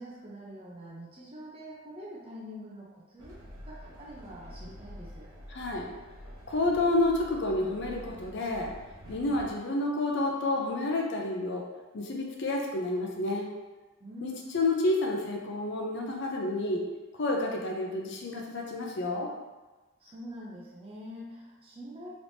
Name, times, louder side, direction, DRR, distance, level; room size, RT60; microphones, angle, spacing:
voice 1, 0.0-3.4 3.6-5.3 14.0-14.6 20.0-22.2, equal, 25° right, -5 dB, 0.5 m, -45 dB
Train, 3.2-9.5, equal, 85° right, 0.8 m, -47 dB
voice 2, 5.5-5.9 6.5-8.7 9.1-11.7 11.9-13.5 14.2-16.9 17.1-19.3, left 2 dB, 55° left, 0 dB, 0.5 m, -29 dB
3.4 x 3.1 x 2.6 m, 1.2 s
head